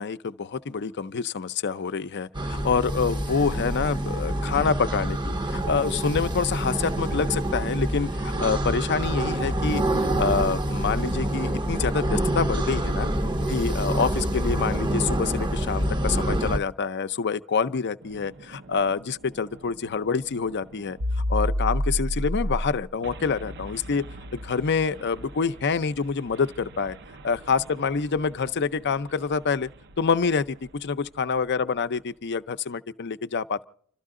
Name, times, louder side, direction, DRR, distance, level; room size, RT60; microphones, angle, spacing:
voice 1, 0.0-9.8 10.2-13.1 13.5-21.0 21.3-24.1 24.3-27.0 27.2-29.7 30.0-33.6, left 5 dB, 50° left, 0.6 m, -27 dB
sound 1, 2.3-16.6, right 1 dB, 20° right, 0.7 m, -26 dB
sound 2, 18.0-30.7, equal, 50° right, 0.7 m, -33 dB
29.5 x 13.0 x 3.7 m
head